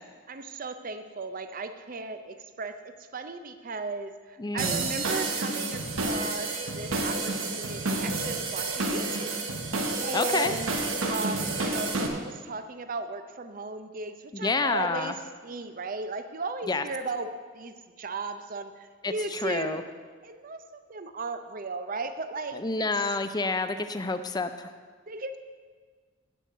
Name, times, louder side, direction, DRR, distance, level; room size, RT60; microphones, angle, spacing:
voice 1, 0.3-9.5 10.0-10.7 11.1-19.8 20.2-23.1 25.1-25.4, right 3 dB, 40° right, 9 dB, 0.6 m, -36 dB
voice 2, 4.4-4.9 10.1-10.5 14.3-15.1 16.7-16.8 19.0-19.8 22.5-24.7, left 3 dB, 20° left, 10 dB, 0.4 m, -29 dB
sound 1, 4.6-12.1, right 3 dB, 85° right, 1.2 m, -30 dB
8.3 x 6.3 x 7.8 m, 1.6 s
head